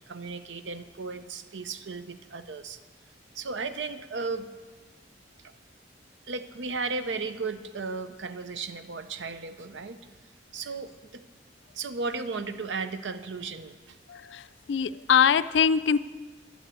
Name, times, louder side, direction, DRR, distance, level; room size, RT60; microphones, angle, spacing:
voice 1, 0.1-2.8 3.3-4.5 5.4-5.5 6.3-10.1 10.5-11.2 11.7-14.0, right 4 dB, 85° right, 10 dB, 0.7 m, -35 dB
voice 2, 14.1-16.0, left 7 dB, 75° left, 15 dB, 0.4 m, -23 dB
11.5 x 6.8 x 8.8 m, 1.4 s
head